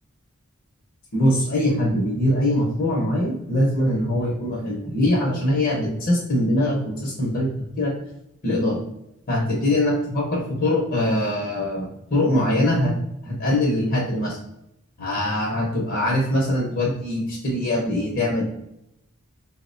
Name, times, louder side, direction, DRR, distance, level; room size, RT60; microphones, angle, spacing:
voice 1, 1.1-7.5 7.8-7.9 8.4-8.8 9.3-12.9 13.2-14.4 15.0-18.4, left 1 dB, 45° left, -3 dB, 0.8 m, -22 dB
3.9 x 2.1 x 2.6 m, 0.81 s
head